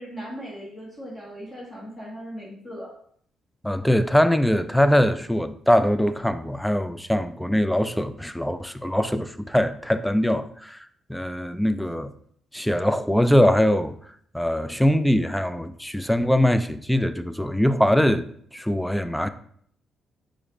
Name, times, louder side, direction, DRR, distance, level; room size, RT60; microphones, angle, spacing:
voice 1, 0.0-2.9, equal, 20° left, 1.6 m, -38 dB
voice 2, 3.6-12.1 12.5-13.9 14.3-19.3, equal, 5° left, 0.3 m, -22 dB
4.9 x 2.5 x 3.9 m
cardioid pair, 90°, 0 cm